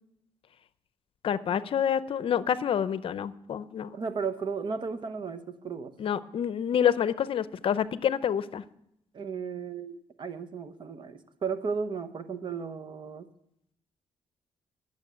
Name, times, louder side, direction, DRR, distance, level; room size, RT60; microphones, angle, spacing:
voice 1, 1.2-4.0 6.0-8.6, left 8 dB, 60° left, 15 dB, 0.6 m, -27 dB
voice 2, 3.9-5.9 9.1-13.3, right 5 dB, 50° right, 11 dB, 1.0 m, -34 dB
11.5 x 7.1 x 9.4 m, 0.76 s
cardioid pair, 85°, 10 cm